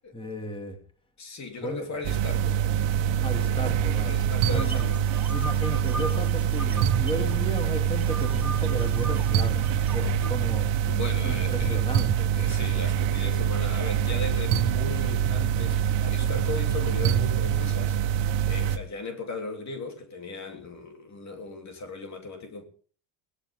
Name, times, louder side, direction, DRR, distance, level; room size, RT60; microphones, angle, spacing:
voice 1, 0.1-0.8 1.6-1.9 3.2-4.2 4.5-4.8 5.3-10.9 11.2-12.3, equal, 10° left, 3.0 m, -34 dB
voice 2, 1.2-2.6 4.0-5.0 10.2-10.3 10.9-11.9 12.3-18.0 18.4-22.6, left 3 dB, 35° left, 3.3 m, -37 dB
sound 1, 2.0-18.8, right 10 dB, 70° right, 1.6 m, -25 dB
sound 2, 4.5-7.3 7.6-10.3, right 2 dB, 5° right, 2.6 m, -39 dB
21.0 x 18.0 x 3.7 m
cardioid pair, 150°, 46 cm